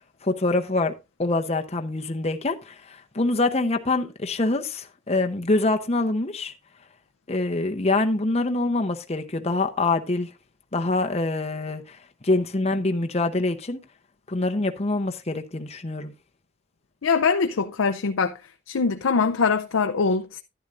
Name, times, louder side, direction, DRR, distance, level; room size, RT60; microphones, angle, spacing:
voice 1, 0.2-6.5 7.3-10.3 10.7-13.8 14.3-16.1, left 2 dB, 30° left, 0.8 m, -25 dB
voice 2, 17.0-18.4 18.7-20.4, left 5 dB, 85° left, 0.6 m, -23 dB
11.0 x 11.0 x 2.5 m
head